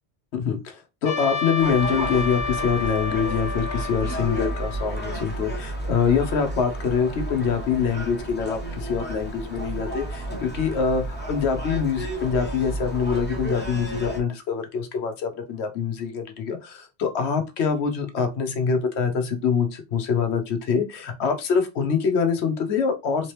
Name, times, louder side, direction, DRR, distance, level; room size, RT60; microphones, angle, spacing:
voice 1, 0.3-23.3, left 6 dB, 85° left, 1.1 m, -25 dB
Trumpet, 1.0-5.5, left 5 dB, 50° left, 0.3 m, -31 dB
Gull seagull, 1.6-14.2, right 1 dB, 10° left, 0.8 m, -32 dB
3.5 x 2.9 x 3.2 m
omnidirectional pair, 1.1 m